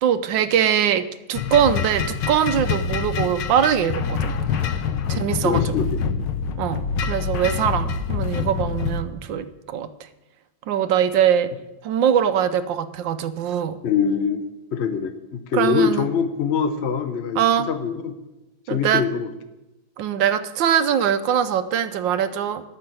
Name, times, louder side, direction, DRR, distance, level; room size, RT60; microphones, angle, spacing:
voice 1, 0.0-4.3 5.1-5.6 6.6-9.9 10.7-11.5 11.8-13.8 15.5-16.1 17.4-17.7 18.7-19.0 20.0-22.6, right 9 dB, 75° right, 11 dB, 1.4 m, -22 dB
sound 1, 1.4-9.0, left 6 dB, 70° left, 1.4 m, -26 dB
voice 2, 5.0-6.3 13.8-14.4 14.7-18.2 18.7-19.3, left 6 dB, 50° left, 8 dB, 0.8 m, -24 dB
13.5 x 6.7 x 7.8 m, 1.0 s
omnidirectional pair, 2.1 m